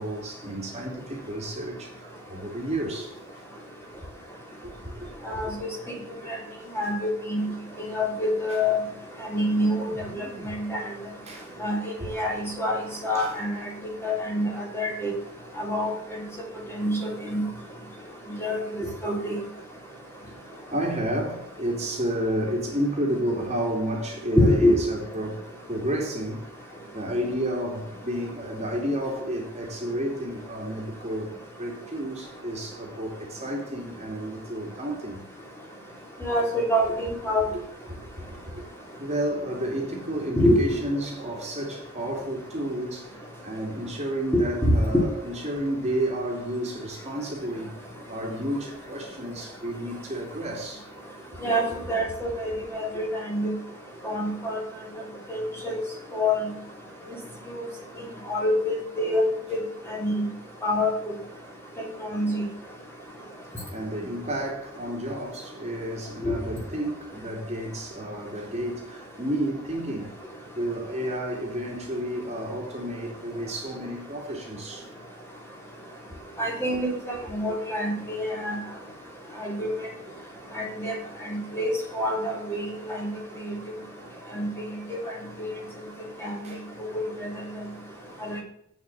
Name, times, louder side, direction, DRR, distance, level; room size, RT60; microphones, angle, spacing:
voice 1, 0.0-3.2 4.6-5.4 6.2-6.4 8.5-8.6 9.6-10.5 11.2-11.5 12.0-12.3 13.1-13.7 20.7-26.5 26.9-35.2 37.5-37.6 37.9-38.0 38.3-38.6 39.0-47.7 48.1-50.9 63.7-70.2 70.5-74.9 76.1-76.3 76.7-76.8 86.4-86.6, right 1 dB, 30° right, 2.7 m, -31 dB
voice 2, 6.7-7.5 7.9-8.8 9.3-9.9 10.4-10.8 11.6-13.5 14.0-15.1 15.6-15.9 16.7-17.5 18.4-19.4 24.4-24.8 36.2-37.5 40.4-40.8 44.3-44.4 44.9-45.0 51.4-53.5 54.0-54.6 55.3-55.8 56.1-56.3 57.5-57.6 58.3-59.2 59.5-59.6 60.0-60.2 60.6-60.9 62.1-62.4 66.2-66.3 76.4-78.6 79.4-79.7 80.6-80.9 81.3-83.1 83.4-83.5 84.3-84.5 84.9-85.0 85.4-85.5 86.2-86.5 86.9-87.3 88.3-88.4, left 1 dB, 10° left, 3.2 m, -26 dB
8.7 x 7.3 x 7.2 m
head